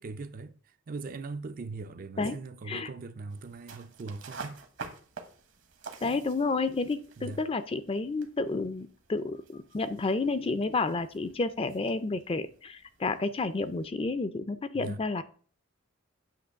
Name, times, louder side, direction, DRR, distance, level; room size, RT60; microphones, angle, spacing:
voice 1, 0.0-4.6 7.2-7.4 14.7-15.1, right 3 dB, 40° right, 0.4 m, -40 dB
sound 1, 3.3-13.9, right 4 dB, 65° right, 1.1 m, -49 dB
voice 2, 6.0-15.2, left 3 dB, 25° left, 0.4 m, -30 dB
8.6 x 3.0 x 6.2 m
head